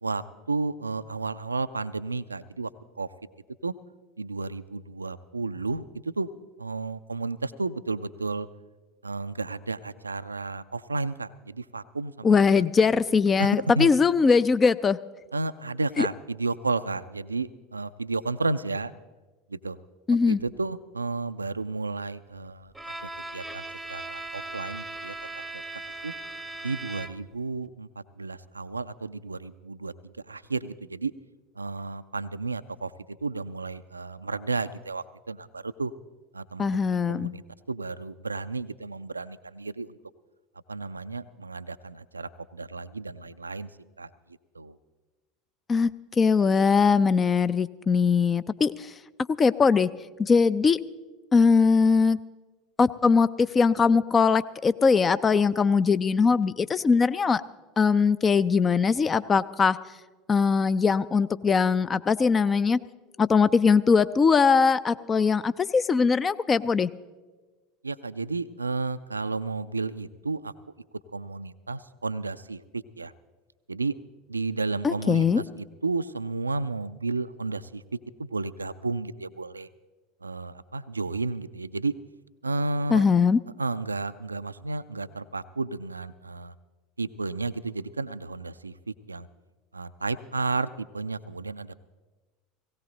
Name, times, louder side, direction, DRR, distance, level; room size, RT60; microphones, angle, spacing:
voice 1, 0.0-2.7 3.0-3.1 3.6-3.7 4.2-6.3 6.6-8.5 9.0-12.7 13.4-13.5 13.7-13.9 15.3-18.9 19.5-19.8 20.3-23.6 23.9-25.1 25.5-25.6 26.0-26.1 26.6-31.1 31.6-35.9 36.3-36.7 37.1-37.4 37.7-40.0 40.7-43.7 44.0-44.1 44.5-44.8 67.8-70.5 71.1-73.1 73.7-74.0 74.3-79.7 80.2-81.9 82.4-83.1 83.6-86.5 87.0-89.3 89.7-91.7, right 3 dB, 80° right, 14 dB, 0.3 m, -32 dB
voice 2, 12.2-15.0 16.0-16.1 20.1-20.4 36.6-37.3 45.7-45.9 46.2-48.9 49.4-49.9 50.2-50.8 51.3-52.2 52.8-57.4 57.8-59.8 60.3-62.8 63.2-66.9 74.8-75.4 82.9-83.4, left 5 dB, 25° left, 16 dB, 0.4 m, -21 dB
Bowed string instrument, 22.7-27.4, right 2 dB, 5° right, 0.9 m, -38 dB
17.5 x 17.0 x 3.9 m, 1.2 s
figure-of-eight pair, 75°, 0 cm